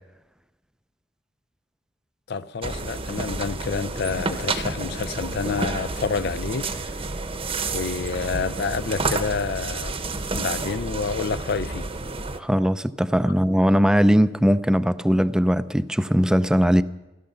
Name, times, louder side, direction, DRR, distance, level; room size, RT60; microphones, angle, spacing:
voice 1, 2.3-6.9 7.7-10.0 10.3-11.9, left 5 dB, 65° left, 0.5 m, -28 dB
sound 1, 2.6-12.4, right 3 dB, 30° right, 0.9 m, -30 dB
voice 2, 12.4-16.8, equal, 5° right, 0.4 m, -20 dB
16.0 x 13.0 x 6.7 m
head